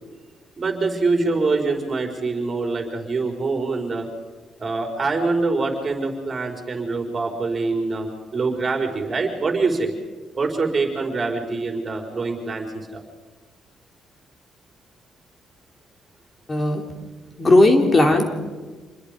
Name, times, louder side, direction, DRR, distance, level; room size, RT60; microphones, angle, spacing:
voice 1, 0.6-4.1 4.6-9.9 10.4-12.7 12.9-13.0, right 3 dB, 35° right, 3 dB, 4.9 m, -24 dB
voice 2, 16.5-16.8 17.4-18.2, left 2 dB, 30° left, 4 dB, 3.4 m, -16 dB
27.5 x 21.0 x 5.3 m, 1.3 s
cardioid pair, 90°, 0 cm